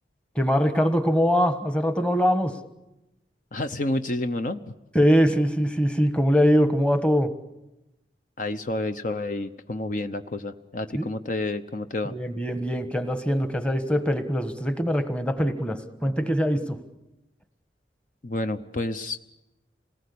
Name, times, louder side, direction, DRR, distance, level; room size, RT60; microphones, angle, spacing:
voice 1, 0.3-2.6 4.9-7.4 10.9-11.1 12.1-16.8, equal, 5° left, 8 dB, 1.3 m, -23 dB
voice 2, 3.5-4.6 8.4-12.1 18.2-19.2, left 2 dB, 45° left, 9 dB, 0.8 m, -29 dB
27.0 x 19.0 x 8.5 m, 0.97 s
head